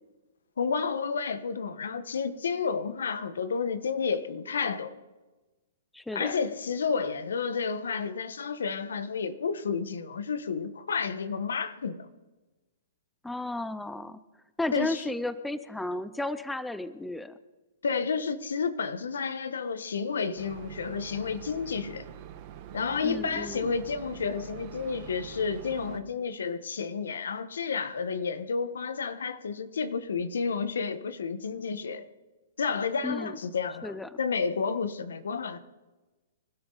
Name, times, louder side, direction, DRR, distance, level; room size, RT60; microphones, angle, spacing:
voice 1, 0.6-5.0 6.1-12.1 14.7-15.0 17.8-22.0 22.7-32.1 32.6-35.6, left 5 dB, 85° left, 12 dB, 1.4 m, -31 dB
voice 2, 5.9-6.3 13.2-14.2 14.6-17.4 23.0-23.7 33.0-33.4 33.8-34.2, left 2 dB, 5° left, 14 dB, 0.6 m, -33 dB
sound 1, 20.4-26.0, right 10 dB, 40° right, 1.9 m, -45 dB
25.5 x 12.5 x 4.1 m, 1.2 s
hypercardioid pair, 145°, 0 cm